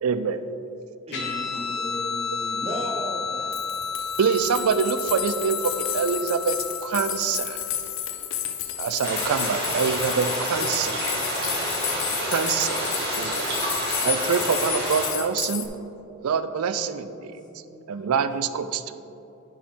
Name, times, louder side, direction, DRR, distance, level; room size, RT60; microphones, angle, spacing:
voice 1, 0.0-0.4 4.2-6.6 6.8-7.6 8.8-11.1 12.2-13.4 14.0-15.7 16.2-17.3 17.9-18.8, right 6 dB, 85° right, 12 dB, 0.4 m, -25 dB
Guitar, 1.1-8.0, left 5 dB, 50° left, 1.2 m, -32 dB
voice 2, 1.1-3.7, equal, 30° right, 0 dB, 0.7 m, -35 dB
voice 3, 1.8-2.2 11.9-12.4 16.7-18.1 18.8-19.1, left 1 dB, 20° left, -3 dB, 1.1 m, -46 dB
sound 1, 3.3-3.4 3.5-15.7, left 10 dB, 65° left, 0.6 m, -31 dB
sound 2, 9.0-15.1, right 1 dB, 50° right, 1.6 m, -29 dB
10.0 x 4.8 x 3.7 m, 2.9 s
head